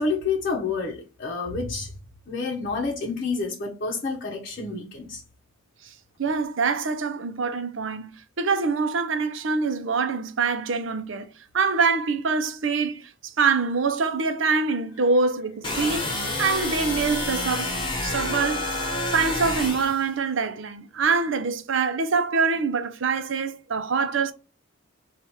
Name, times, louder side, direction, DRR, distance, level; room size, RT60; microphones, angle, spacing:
voice 1, 0.0-1.9 2.3-5.2, left 4 dB, 45° left, 0.8 m, -29 dB
voice 2, 6.2-16.1 16.4-17.8 18.0-24.3, right 4 dB, 70° right, 0.6 m, -25 dB
sound 1, 15.6-20.0, left 2 dB, 25° left, 1.1 m, -28 dB
4.7 x 2.5 x 4.3 m
head